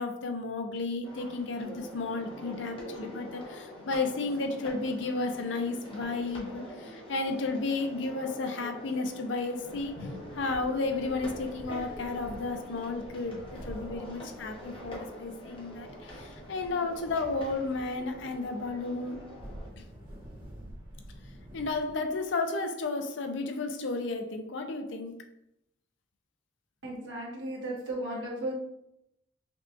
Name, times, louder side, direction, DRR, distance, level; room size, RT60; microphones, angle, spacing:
voice 1, 0.0-15.9 16.1-19.2 21.5-25.2, left 3 dB, 70° left, 6 dB, 0.5 m, -33 dB
sound 1, 1.0-19.7, equal, 25° left, 0.8 m, -45 dB
sound 2, 9.5-22.3, equal, 25° right, 1.2 m, -49 dB
voice 2, 26.8-28.5, right 1 dB, 70° right, -4 dB, 1.3 m, -35 dB
5.4 x 2.4 x 2.5 m, 0.82 s
head